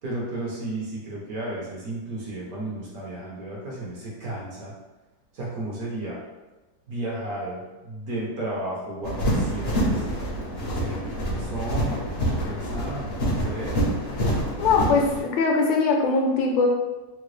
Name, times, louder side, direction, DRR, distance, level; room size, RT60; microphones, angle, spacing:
voice 1, 0.0-4.7 5.3-6.2 6.9-10.1 10.7-13.8, right 1 dB, 60° right, -5 dB, 1.2 m, -33 dB
sound 1, 9.0-15.2, right 1 dB, 65° left, 0.6 m, -26 dB
voice 2, 14.6-16.7, left 4 dB, 85° left, 1 dB, 1.3 m, -21 dB
3.7 x 2.2 x 3.1 m, 1.1 s
omnidirectional pair, 2.0 m